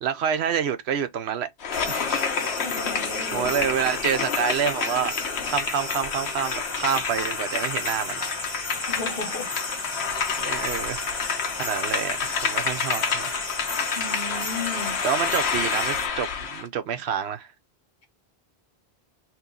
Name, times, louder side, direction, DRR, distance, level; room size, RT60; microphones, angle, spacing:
voice 1, 0.0-1.5 1.9-2.2 3.3-5.1 5.5-8.2 10.1-11.0 11.6-13.3 15.0-17.5, right 8 dB, 85° right, 1.0 m, -27 dB
sound 1, 1.6-16.7, left 6 dB, 85° left, 1.1 m, -29 dB
sound 2, 1.7-16.1, left 2 dB, 25° left, 1.1 m, -34 dB
voice 2, 2.6-3.5 8.9-9.5 10.4-10.7 13.9-15.0, left 3 dB, 60° left, 1.4 m, -35 dB
3.1 x 3.0 x 3.7 m
omnidirectional pair, 1.1 m